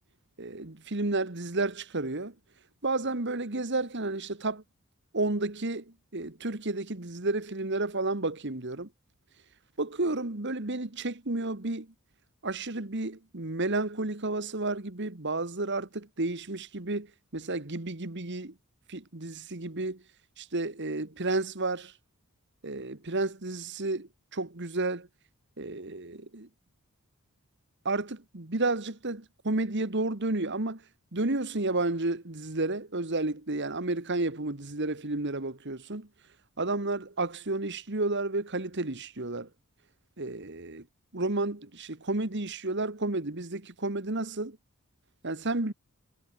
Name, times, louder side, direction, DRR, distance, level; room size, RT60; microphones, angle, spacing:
voice 1, 0.4-2.3 2.8-4.6 5.1-5.9 6.1-8.9 9.8-11.9 12.4-17.1 17.3-18.5 18.9-20.0 20.4-21.9 22.6-25.1 25.6-26.5 27.9-30.8 31.1-36.1 36.6-39.5 40.2-40.8 41.1-44.6 45.2-45.7, right 2 dB, 50° right, 1.8 m, -31 dB
head